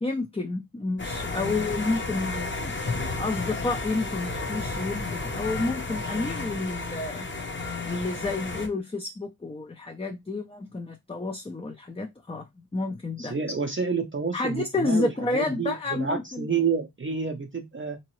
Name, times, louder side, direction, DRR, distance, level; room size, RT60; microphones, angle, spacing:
voice 1, 0.0-2.6 3.2-7.3 7.8-13.3 14.3-16.5, left 2 dB, 15° left, 0.5 m, -30 dB
sound 1, 1.0-8.7, left 3 dB, 35° left, 0.8 m, -32 dB
voice 2, 13.2-18.0, right 5 dB, 35° right, 0.6 m, -29 dB
3.5 x 2.9 x 3.0 m
wide cardioid pair, 45°, 35 cm